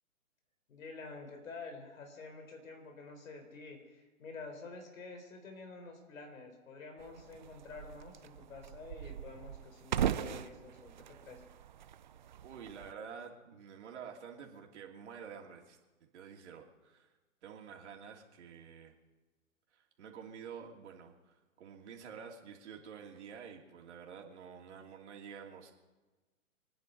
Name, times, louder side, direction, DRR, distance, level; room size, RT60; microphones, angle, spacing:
voice 1, 0.7-11.4, left 4 dB, 70° left, 5 dB, 4.3 m, -49 dB
sound 1, 7.0-12.9, right 10 dB, 35° right, 0.4 m, -40 dB
voice 2, 12.4-15.8 16.1-17.1 17.4-18.9 19.7-25.7, right 7 dB, 55° right, 1 dB, 2.9 m, -49 dB
26.0 x 10.0 x 5.4 m, 1.2 s
hypercardioid pair, 150°, 42 cm